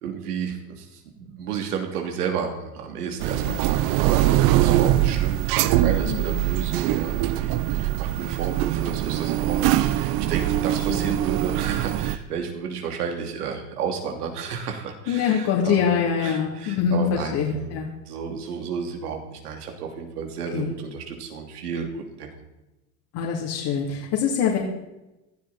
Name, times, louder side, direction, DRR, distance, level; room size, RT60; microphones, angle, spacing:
voice 1, 0.0-22.3, right 6 dB, 85° right, 3 dB, 3.1 m, -32 dB
sound 1, 3.2-12.2, right 13 dB, 55° right, 0.9 m, -22 dB
voice 2, 3.3-3.9 6.0-6.5 10.9-11.0 15.1-17.9 20.5-20.7 23.1-24.6, left 7 dB, 55° left, -3 dB, 3.3 m, -24 dB
18.5 x 12.5 x 4.4 m, 0.99 s
hypercardioid pair, 100°, 45 cm